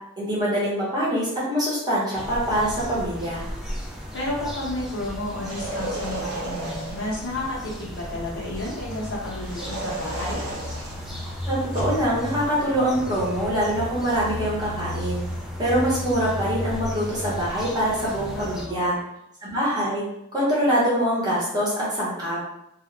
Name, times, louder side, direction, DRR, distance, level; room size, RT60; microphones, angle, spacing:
voice 1, 0.2-3.5 11.5-15.2 15.6-18.9 19.4-20.1 20.3-22.4, equal, 20° right, -8 dB, 0.9 m, -24 dB
sound 1, 2.2-18.6, left 1 dB, ahead, 0.3 m, -34 dB
voice 2, 4.1-10.4 18.3-19.0, left 1 dB, 55° left, -5 dB, 0.8 m, -31 dB
sound 2, 5.3-7.2 9.4-12.1, right 2 dB, 90° right, 0.6 m, -34 dB
2.3 x 2.1 x 3.1 m, 0.81 s
head